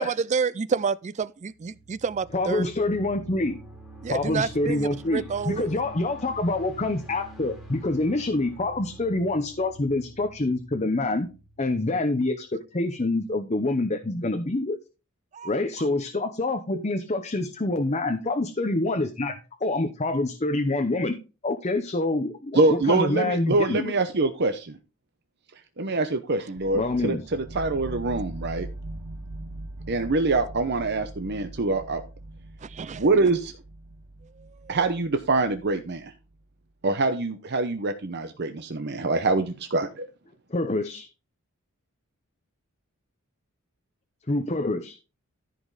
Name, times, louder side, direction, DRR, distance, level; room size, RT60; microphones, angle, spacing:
voice 1, 0.0-2.7 4.0-5.8 15.3-15.5 15.8-15.9 28.1-28.2 32.6-33.0 34.6-34.8, right 5 dB, 35° right, 0.4 m, -29 dB
sound 1, 1.5-12.3, right 1 dB, ahead, 3.3 m, -46 dB
voice 2, 2.3-3.6 4.1-11.3 11.6-14.8 15.4-21.2 21.4-23.9 26.7-27.2 40.5-41.1 44.3-45.0, left 2 dB, 30° left, 0.8 m, -26 dB
voice 3, 22.5-24.8 25.8-28.7 29.9-32.0 33.0-33.5 34.7-36.1 36.8-40.0, right 3 dB, 50° right, 0.8 m, -25 dB
sound 2, 26.6-36.4, right 1 dB, 75° right, 1.2 m, -41 dB
14.0 x 5.2 x 4.0 m
head